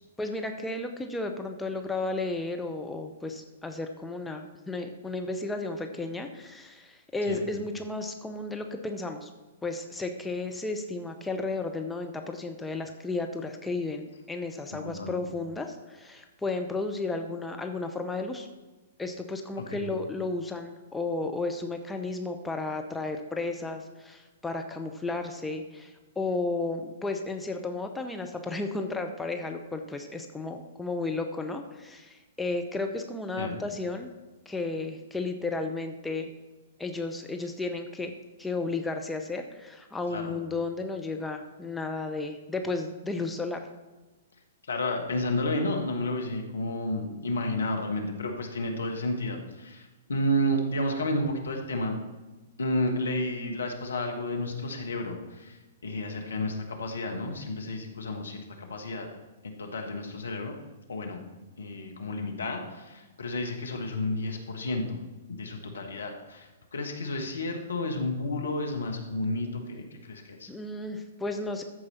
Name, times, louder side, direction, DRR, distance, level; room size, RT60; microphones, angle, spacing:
voice 1, 0.2-9.3 9.6-18.5 19.0-34.1 34.5-36.3 36.8-38.1 38.4-43.7 70.5-71.6, left 3 dB, 5° left, 4 dB, 0.7 m, -33 dB
voice 2, 14.7-15.2 19.7-19.9 33.4-33.6 40.1-40.4 44.7-52.0 52.6-59.1 59.6-60.5 60.9-61.2 61.6-65.0 65.3-70.5, left 1 dB, 70° left, 3 dB, 1.4 m, -31 dB
14.0 x 4.8 x 4.3 m, 1.2 s
figure-of-eight pair, 110°, 0 cm